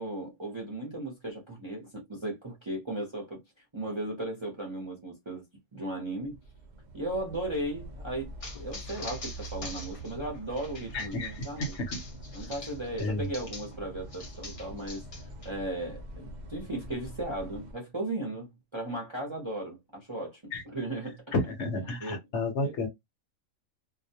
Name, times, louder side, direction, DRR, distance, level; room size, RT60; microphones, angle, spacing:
voice 1, 0.0-3.4 3.7-5.5 5.7-6.4 6.9-11.7 12.3-15.0 15.4-21.2 21.9-22.2 22.6-22.7, right 1 dB, 30° right, 0.6 m, -36 dB
sound 1, 6.2-17.7, right 1 dB, 80° right, 0.4 m, -44 dB
sound 2, 8.4-13.8 14.1-15.5, left 3 dB, 40° left, 0.5 m, -44 dB
voice 2, 10.9-12.0 13.0-13.3 20.5-20.6 21.3-22.9, left 2 dB, 60° left, 0.9 m, -31 dB
2.3 x 2.2 x 2.7 m
omnidirectional pair, 1.5 m